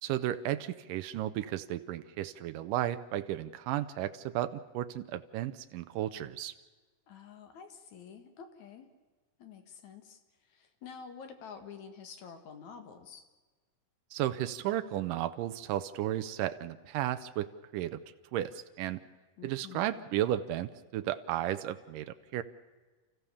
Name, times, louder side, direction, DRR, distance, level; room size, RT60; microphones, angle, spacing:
voice 1, 0.0-6.5 14.1-17.5 17.7-18.0 18.3-19.0 19.4-22.4, right 13 dB, 90° right, 10 dB, 2.4 m, -34 dB
voice 2, 7.1-8.9 9.4-10.2 10.5-13.3 19.4-20.0, left 6 dB, 65° left, 7 dB, 3.0 m, -49 dB
29.5 x 15.0 x 7.1 m, 1.3 s
omnidirectional pair, 3.7 m